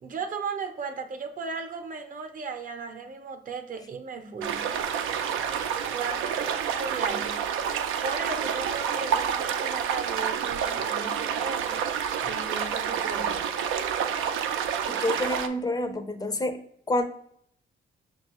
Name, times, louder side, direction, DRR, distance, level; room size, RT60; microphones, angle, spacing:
voice 1, 0.0-4.7 5.9-7.4 8.0-11.8 12.2-13.5, right 4 dB, 45° right, 7 dB, 0.7 m, -36 dB
sound 1, 4.4-15.5, right 8 dB, 85° right, 0.4 m, -28 dB
voice 2, 14.9-16.6 16.9-17.0, left 1 dB, 20° left, 8 dB, 0.5 m, -28 dB
6.0 x 2.3 x 2.9 m, 0.69 s
cardioid pair, 90°, 20 cm